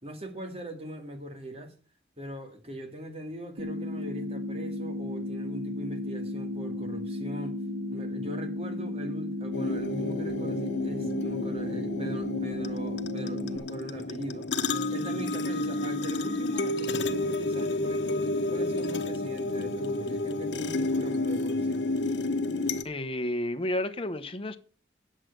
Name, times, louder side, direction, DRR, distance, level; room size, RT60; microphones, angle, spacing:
voice 1, 0.0-1.8 2.2-7.6 7.9-14.5 14.9-21.9, right 1 dB, 35° right, 2.3 m, -41 dB
sound 1, 3.6-13.6, left 1 dB, 80° right, 1.5 m, -34 dB
sound 2, 9.5-22.8, left 2 dB, 80° left, 1.1 m, -30 dB
voice 2, 22.8-24.6, left 1 dB, 30° left, 1.1 m, -31 dB
9.8 x 7.6 x 6.7 m
head